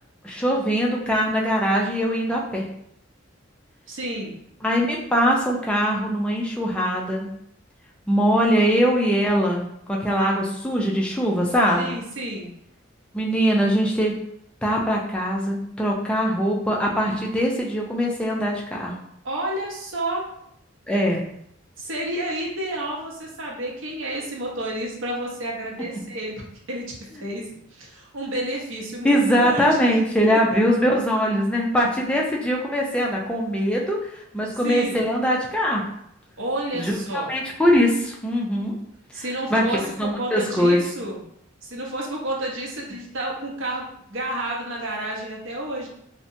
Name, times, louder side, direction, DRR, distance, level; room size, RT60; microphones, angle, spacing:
voice 1, 0.2-2.7 4.6-7.3 8.1-12.0 13.1-14.1 14.6-19.0 20.9-21.2 29.0-35.8 36.7-37.0 37.3-38.8 39.1-39.2 39.5-40.8, equal, 5° left, -2 dB, 0.3 m, -22 dB
voice 2, 3.9-4.4 11.8-12.5 19.2-20.3 21.8-26.4 26.7-30.0 30.3-30.6 34.6-35.0 36.4-37.3 39.1-41.2 41.6-45.9, right 1 dB, 75° right, -2 dB, 0.7 m, -30 dB
2.7 x 2.1 x 2.5 m, 0.73 s
head